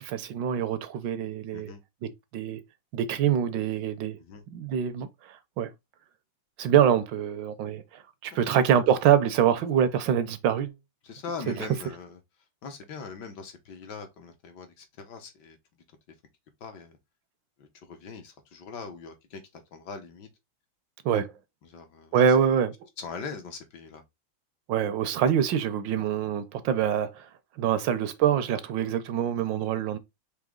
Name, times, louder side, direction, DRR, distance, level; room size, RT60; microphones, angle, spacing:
voice 1, 0.0-1.7 2.0-2.6 2.9-4.2 4.5-5.7 6.6-10.7 11.5-11.6 21.0-21.3 22.1-22.7 24.7-27.3 27.6-30.0, right 9 dB, 75° right, 1.3 m, -25 dB
voice 2, 11.0-12.2 12.6-15.6 16.6-17.0 17.6-20.3 21.6-22.5 23.0-24.0 27.7-27.9, left 5 dB, 65° left, 1.5 m, -41 dB
5.0 x 2.9 x 3.6 m
omnidirectional pair, 2.1 m